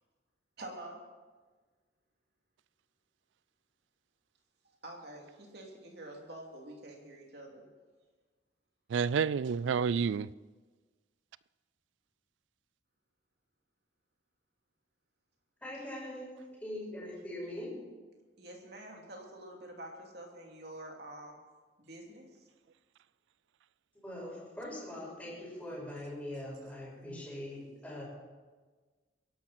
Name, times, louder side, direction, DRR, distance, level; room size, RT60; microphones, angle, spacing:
voice 1, 0.6-1.0 4.6-7.7 15.7-15.8 18.4-21.4 21.8-22.5, right 1 dB, 55° right, 2.9 m, -47 dB
voice 2, 8.9-10.3 27.1-27.2, right 6 dB, 70° right, 0.3 m, -29 dB
voice 3, 15.6-17.7 24.0-28.0, left 1 dB, 5° left, 5.9 m, -42 dB
22.0 x 12.0 x 4.4 m
head